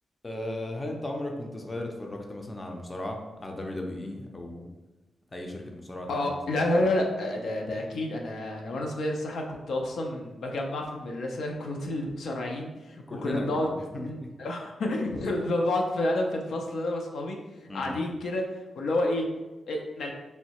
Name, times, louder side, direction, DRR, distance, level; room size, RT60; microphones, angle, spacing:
voice 1, 0.2-4.7 5.3-6.4 13.1-14.3 17.7-18.0, left 1 dB, 25° left, 2 dB, 0.5 m, -36 dB
voice 2, 6.1-13.7 13.9-17.4 17.7-18.4 18.8-19.3 19.7-20.1, left 1 dB, 80° left, 1 dB, 0.5 m, -29 dB
3.2 x 2.7 x 2.9 m, 1.1 s
cardioid pair, 100°, 0 cm